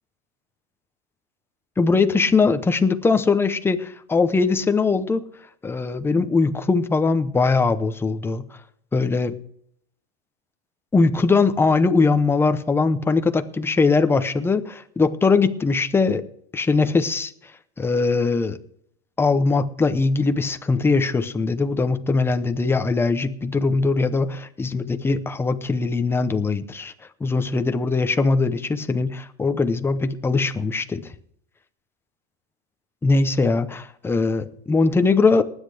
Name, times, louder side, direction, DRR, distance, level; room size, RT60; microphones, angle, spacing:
voice 1, 1.8-5.2 5.6-8.4 8.9-9.4 10.9-16.2 16.5-17.3 17.8-18.6 19.2-26.9 27.2-31.0 33.0-33.7 34.0-35.4, left 4 dB, 5° left, 9 dB, 0.7 m, -21 dB
19.5 x 9.8 x 3.4 m, 0.65 s
supercardioid pair, 150°, 31 cm